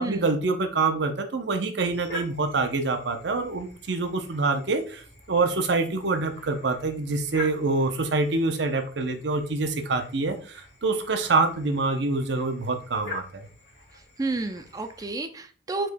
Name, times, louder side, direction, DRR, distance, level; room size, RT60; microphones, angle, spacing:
voice 1, 0.0-13.5, right 3 dB, 75° right, 7 dB, 0.7 m, -26 dB
sound 1, 1.8-15.1, left 2 dB, 55° left, 1.9 m, -45 dB
voice 2, 14.2-15.9, right 3 dB, 20° right, 7 dB, 0.4 m, -30 dB
5.1 x 4.2 x 2.2 m, 0.41 s
head